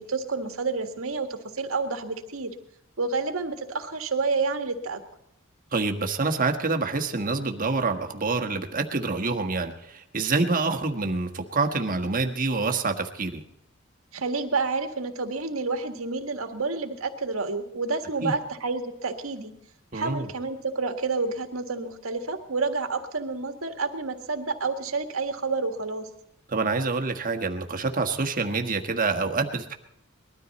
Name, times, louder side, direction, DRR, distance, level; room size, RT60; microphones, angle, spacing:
voice 1, 0.0-2.5 3.0-5.0 14.1-19.5 19.9-26.1, right 4 dB, 80° right, 6 dB, 1.8 m, -29 dB
voice 2, 5.7-13.4 18.2-18.3 19.9-20.3 26.5-29.7, right 3 dB, 40° right, 4 dB, 1.5 m, -27 dB
20.5 x 13.0 x 4.2 m, 0.78 s
head